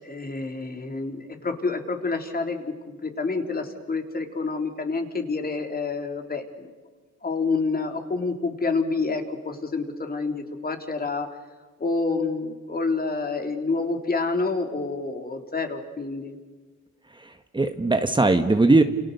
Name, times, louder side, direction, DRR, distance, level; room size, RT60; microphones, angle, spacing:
voice 1, 0.0-6.7 7.2-11.3 11.8-16.4, left 3 dB, 30° left, 5 dB, 3.9 m, -28 dB
voice 2, 17.1-18.8, right 2 dB, 15° right, 7 dB, 1.5 m, -20 dB
30.0 x 28.5 x 7.0 m, 1.4 s
cardioid pair, 90°, 30 cm